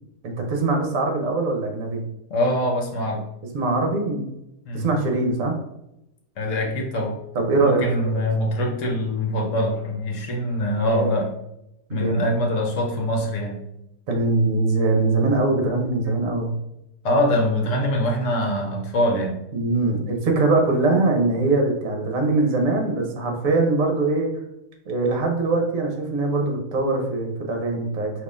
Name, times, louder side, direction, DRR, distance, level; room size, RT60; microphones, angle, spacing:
voice 1, 0.2-2.0 3.5-4.4 4.7-5.5 7.3-8.3 10.8-11.1 11.9-12.3 14.1-16.5 19.5-24.3 24.9-28.1, right 3 dB, 60° right, 2 dB, 1.2 m, -22 dB
voice 2, 2.3-3.3 4.7-4.9 6.4-7.2 7.6-11.3 11.9-13.6 17.0-19.4, left 1 dB, 60° left, 1 dB, 1.0 m, -23 dB
5.2 x 2.9 x 2.5 m, 0.84 s
omnidirectional pair, 1.7 m